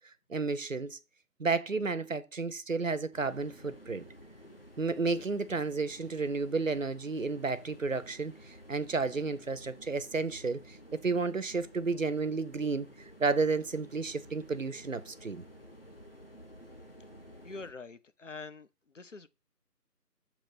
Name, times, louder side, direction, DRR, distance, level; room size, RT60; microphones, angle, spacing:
voice 1, 0.3-1.0 1.4-4.1 4.8-12.9 13.2-15.4, right 4 dB, 55° right, 0.6 m, -32 dB
sound 1, 3.1-17.7, equal, 35° left, 0.8 m, -53 dB
voice 2, 17.4-18.7 18.9-19.3, left 3 dB, 55° left, 0.5 m, -44 dB
6.8 x 3.0 x 5.7 m
figure-of-eight pair, 175°, 47 cm